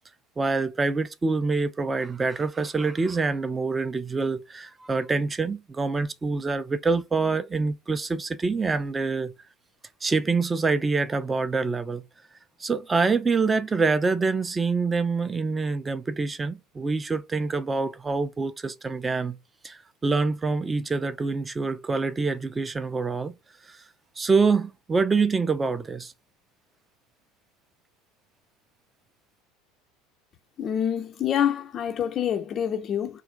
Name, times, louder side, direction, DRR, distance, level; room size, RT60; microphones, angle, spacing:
voice 1, 0.4-9.3 10.0-12.0 12.6-19.4 19.6-23.4 23.7-23.8 24.2-26.1, right 4 dB, 20° right, 0.5 m, -26 dB
voice 2, 30.6-33.2, left 9 dB, 35° left, 0.4 m, -26 dB
3.2 x 2.4 x 3.6 m
figure-of-eight pair, 70°, 0 cm